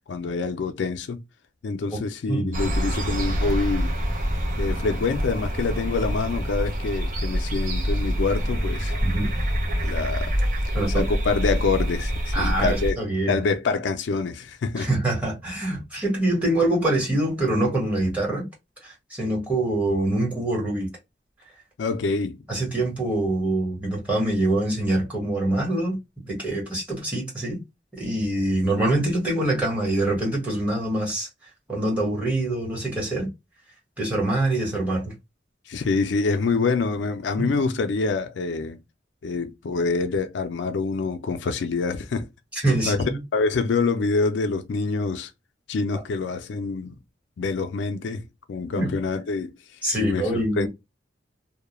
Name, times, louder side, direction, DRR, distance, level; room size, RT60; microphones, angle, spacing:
voice 1, 0.1-1.2 1.6-4.0 4.6-8.9 9.8-10.3 10.9-13.0 13.3-14.9 21.8-22.4 35.7-38.8 39.2-42.2 42.9-43.0 43.3-45.3 45.7-46.9 47.4-49.5 50.0-50.7, left 4 dB, 75° left, 0.4 m, -26 dB
sound 1, 2.5-12.9, equal, 45° right, 0.6 m, -26 dB
voice 2, 9.0-9.3 10.7-11.0 12.3-13.4 14.8-18.5 18.8-20.9 22.5-26.0 26.2-27.6 28.0-31.3 31.7-33.3 34.0-35.1 37.4-37.6 42.5-43.2 48.7-48.9 49.8-50.7, right 1 dB, 10° right, 1.1 m, -25 dB
2.2 x 2.1 x 2.9 m
head